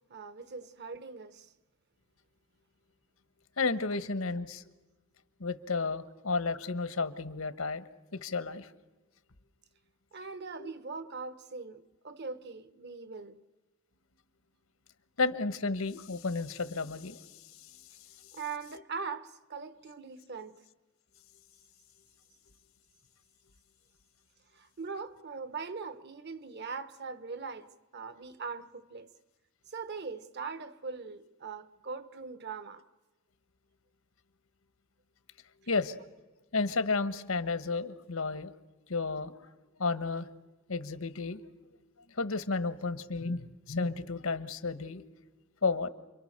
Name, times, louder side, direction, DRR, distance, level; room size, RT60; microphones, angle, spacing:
voice 1, 0.1-1.5 10.1-13.4 18.3-20.6 24.5-29.1 29.7-32.8, right 4 dB, 55° right, 1.2 m, -41 dB
voice 2, 3.6-4.6 5.4-7.8 8.1-8.7 10.6-10.7 15.2-17.2 35.7-35.9 36.5-38.5 38.9-39.3 39.8-40.3 40.7-41.4 42.2-45.0 45.6-45.9, left 4 dB, 85° left, 1.3 m, -32 dB
29.5 x 23.5 x 6.7 m
head